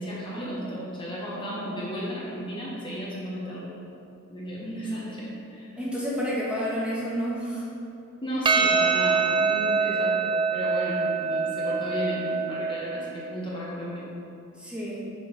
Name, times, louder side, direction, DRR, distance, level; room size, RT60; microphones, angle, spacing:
voice 1, 0.0-3.7 4.3-5.7 8.2-14.1, equal, 25° left, -6 dB, 1.1 m, -34 dB
voice 2, 5.8-7.6 14.6-15.0, equal, 5° right, -7 dB, 1.3 m, -29 dB
Percussion, 8.4-13.1, right 5 dB, 20° right, 0.4 m, -25 dB
6.0 x 4.6 x 5.6 m, 2.8 s
head